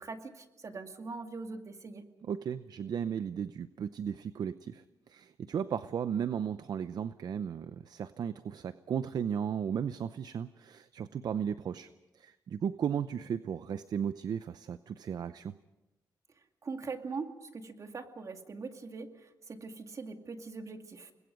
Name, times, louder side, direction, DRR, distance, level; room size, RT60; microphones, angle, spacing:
voice 1, 0.0-2.1 16.6-19.1 19.5-21.1, right 4 dB, 45° right, 5 dB, 2.3 m, -42 dB
voice 2, 2.2-4.8 5.1-11.9 12.2-15.5, right 8 dB, 65° right, 13 dB, 0.7 m, -35 dB
29.5 x 21.0 x 5.2 m, 1.0 s
cardioid pair, 75°, 7 cm